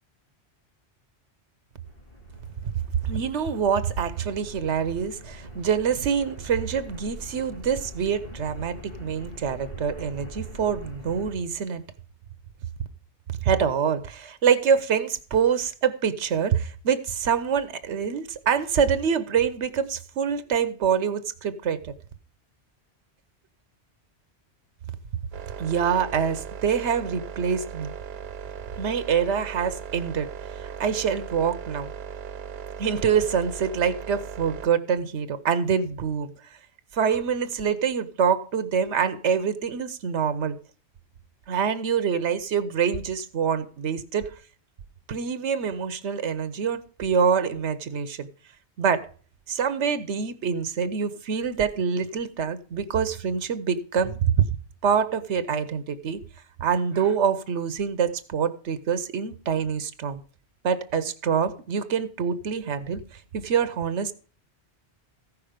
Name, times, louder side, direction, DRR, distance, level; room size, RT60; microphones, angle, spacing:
sound 1, 1.8-11.3, left 1 dB, 40° left, 3.3 m, -43 dB
voice 1, 3.0-11.8 13.4-21.9 25.6-27.9 28.8-31.9 32.8-36.3 36.9-40.6 41.5-44.3 45.1-48.3 48.8-49.1 49.5-54.4 54.8-56.2 56.6-60.2 60.6-64.1, right 7 dB, 85° right, 1.1 m, -25 dB
sound 2, 25.3-34.7, right 7 dB, 65° right, 0.8 m, -38 dB
14.5 x 5.9 x 5.0 m
omnidirectional pair, 1.2 m